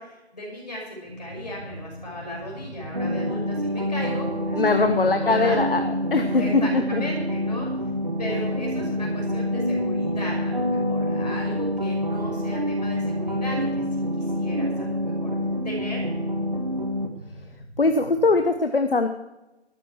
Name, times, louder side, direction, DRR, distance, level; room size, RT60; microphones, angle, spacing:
voice 1, 0.0-5.6 6.1-7.7 8.2-13.7 14.0-15.3 15.6-16.0, equal, 40° left, -2 dB, 6.1 m, -36 dB
sound 1, 1.0-18.3, equal, 15° right, 3.2 m, -41 dB
sound 2, 2.9-17.1, equal, 45° right, 1.4 m, -27 dB
voice 2, 4.5-5.8 6.1-7.0 17.8-19.1, left 3 dB, 55° left, 8 dB, 1.1 m, -21 dB
13.5 x 13.0 x 4.6 m, 0.98 s
figure-of-eight pair, 165°, 34 cm